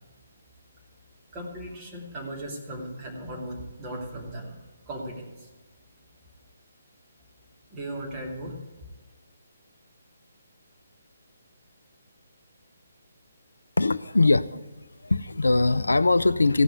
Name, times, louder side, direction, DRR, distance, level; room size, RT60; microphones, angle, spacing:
voice 1, 1.3-4.6 4.9-5.5 7.7-8.6, right 1 dB, 20° right, -2 dB, 2.6 m, -37 dB
voice 2, 13.8-14.6 15.0-16.6, left 3 dB, 70° left, 15 dB, 0.4 m, -21 dB
15.5 x 6.0 x 9.3 m, 1.2 s
figure-of-eight pair, 140°, 0 cm